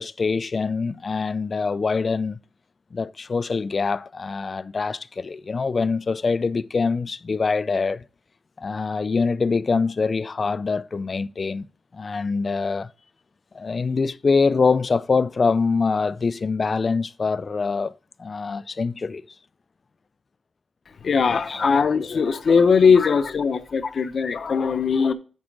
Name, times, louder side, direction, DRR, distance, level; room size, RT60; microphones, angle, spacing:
voice 1, 0.0-2.4 2.9-8.0 8.6-11.7 11.9-12.9 13.5-17.9 18.2-19.2 21.5-21.7 23.0-23.1 23.8-24.1, left 4 dB, 35° left, 0.3 m, -24 dB
voice 2, 21.0-25.1, left 5 dB, 50° left, 0.8 m, -20 dB
7.4 x 4.8 x 6.0 m
wide cardioid pair, 165°, 0 cm